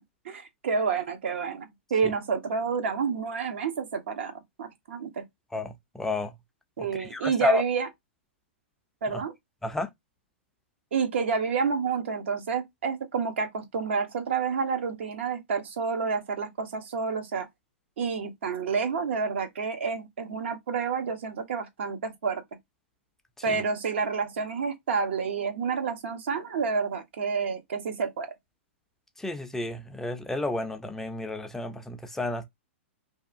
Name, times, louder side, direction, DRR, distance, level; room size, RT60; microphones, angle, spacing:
voice 1, 0.2-4.3 4.6-5.2 6.8-7.9 9.0-9.3 10.9-17.5 18.0-22.4 23.4-28.3, right 5 dB, 70° right, 0.7 m, -29 dB
voice 2, 5.5-6.3 6.8-7.6 9.6-9.9 29.2-32.4, left 1 dB, 5° left, 0.4 m, -31 dB
2.7 x 2.3 x 2.5 m
hypercardioid pair, 120°, 7 cm